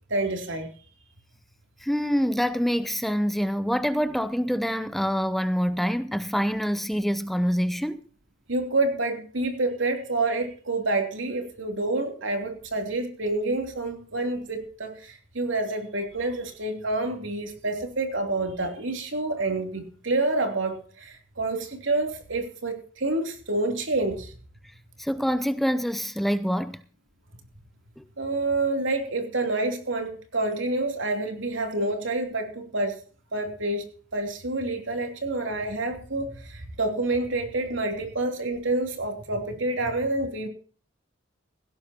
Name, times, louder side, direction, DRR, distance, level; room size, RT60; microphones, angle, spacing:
voice 1, 0.1-0.7 8.5-24.3 28.2-33.0 33.3-40.5, right 2 dB, 85° right, 3.2 m, -28 dB
voice 2, 1.8-8.0 25.0-26.8 28.0-28.1, equal, ahead, 0.6 m, -26 dB
16.5 x 16.5 x 2.9 m
head